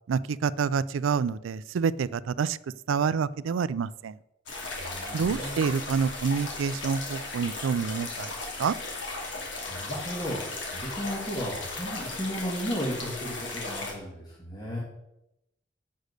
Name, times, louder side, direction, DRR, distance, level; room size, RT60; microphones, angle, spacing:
voice 1, 0.1-2.6 2.9-4.1 5.1-8.3 8.6-8.8, right 6 dB, 90° right, 18 dB, 0.4 m, -27 dB
sound 1, 4.5-13.9, left 3 dB, 70° left, 2.5 m, -36 dB
voice 2, 4.8-5.7 9.7-14.8, equal, 20° left, -5 dB, 2.0 m, -35 dB
8.3 x 6.3 x 6.6 m, 0.87 s
head